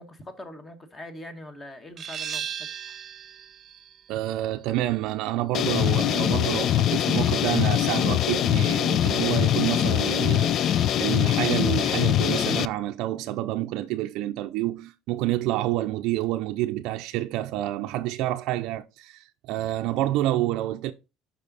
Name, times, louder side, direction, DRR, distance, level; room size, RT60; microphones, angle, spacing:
voice 1, 0.0-3.0, left 1 dB, 20° left, 1.2 m, -43 dB
sound 1, 2.0-7.4, right 9 dB, 40° right, 0.7 m, -39 dB
voice 2, 4.1-20.9, right 15 dB, 70° right, 0.4 m, -28 dB
sound 2, 5.5-12.7, left 11 dB, 50° left, 0.3 m, -23 dB
5.5 x 5.3 x 4.0 m
cardioid pair, 125°, 0 cm